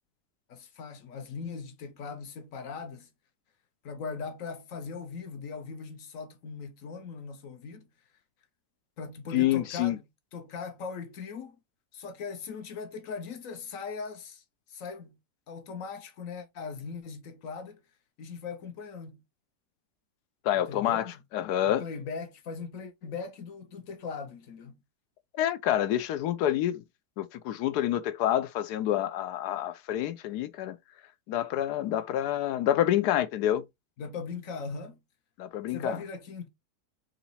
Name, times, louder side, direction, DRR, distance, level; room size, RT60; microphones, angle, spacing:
voice 1, 0.5-3.1 3.8-7.9 9.0-10.0 10.3-11.6 11.9-14.4 14.7-15.2 15.5-17.8 18.2-19.2 20.5-21.2 21.7-24.8 34.0-35.0 35.7-36.5, left 5 dB, 60° left, 1.1 m, -39 dB
voice 2, 9.3-10.0 20.4-21.8 25.4-26.8 27.2-30.7 31.3-33.6 35.4-36.0, left 12 dB, 85° left, 1.2 m, -28 dB
3.9 x 2.9 x 4.1 m
omnidirectional pair, 1.7 m